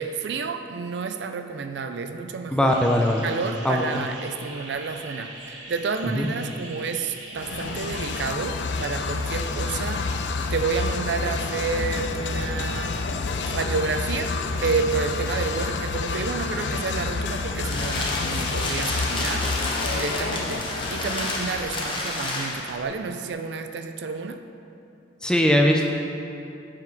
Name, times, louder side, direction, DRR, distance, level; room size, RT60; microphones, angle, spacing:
voice 1, 0.0-2.7 3.2-12.9 13.4-14.3 14.6-24.4, right 5 dB, 65° right, 7 dB, 0.4 m, -30 dB
voice 2, 2.5-3.2 3.6-3.8 6.2-6.3 25.2-25.9, left 1 dB, 5° left, 1 dB, 0.5 m, -20 dB
sound 1, 2.7-8.2, right 2 dB, 85° right, 1.1 m, -41 dB
sound 2, 7.4-22.1, left 4 dB, 70° left, 0.4 m, -29 dB
sound 3, 17.2-22.8, left 2 dB, 25° left, 0.9 m, -30 dB
7.0 x 5.9 x 4.6 m, 2.7 s
head